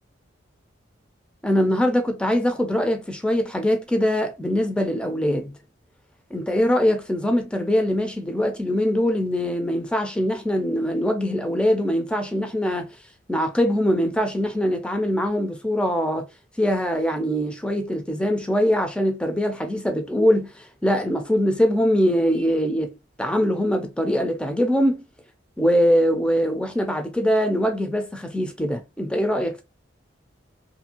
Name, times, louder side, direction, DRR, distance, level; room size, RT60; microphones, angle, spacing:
voice 1, 1.4-5.5 6.3-12.9 13.3-16.3 16.6-22.9 23.2-25.0 25.6-29.6, equal, 5° left, 0.4 m, -22 dB
2.7 x 2.6 x 2.8 m
head